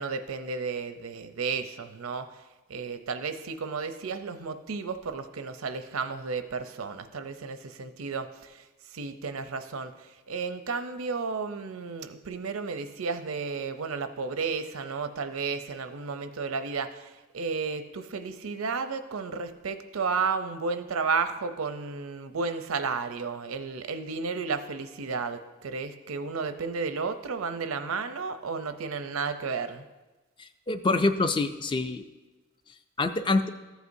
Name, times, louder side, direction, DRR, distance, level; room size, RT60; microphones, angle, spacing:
voice 1, 0.0-2.3 2.7-8.6 8.9-29.8, right 4 dB, 90° right, 9 dB, 0.6 m, -33 dB
voice 2, 30.4-32.1 33.0-33.4, left 3 dB, 25° left, 9 dB, 0.3 m, -26 dB
14.0 x 8.2 x 2.7 m, 1.2 s
head